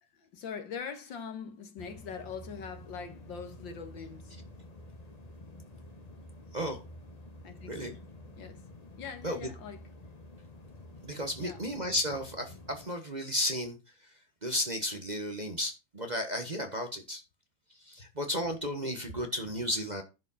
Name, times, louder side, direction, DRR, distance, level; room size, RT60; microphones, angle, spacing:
voice 1, 0.1-4.4 7.4-8.0 8.3-8.7 9.0-9.9 11.4-11.8, left 6 dB, 75° left, 2.2 m, -42 dB
sound 1, 1.8-12.9, left 1 dB, 25° left, 0.9 m, -50 dB
voice 2, 11.0-13.8 14.4-17.2 17.8-20.0, equal, 25° right, 1.2 m, -33 dB
11.0 x 5.2 x 5.6 m
omnidirectional pair, 2.1 m